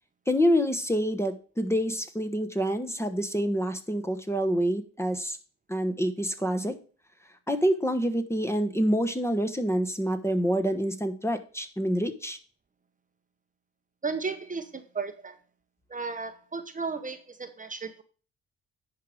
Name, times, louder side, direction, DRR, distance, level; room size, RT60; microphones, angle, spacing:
voice 1, 0.3-5.4 5.7-6.8 7.5-12.4, equal, 10° left, 7 dB, 1.1 m, -27 dB
voice 2, 14.0-15.4 15.9-18.0, right 4 dB, 25° right, 8 dB, 0.9 m, -34 dB
10.0 x 4.8 x 4.9 m, 0.39 s
cardioid pair, 90°, 30 cm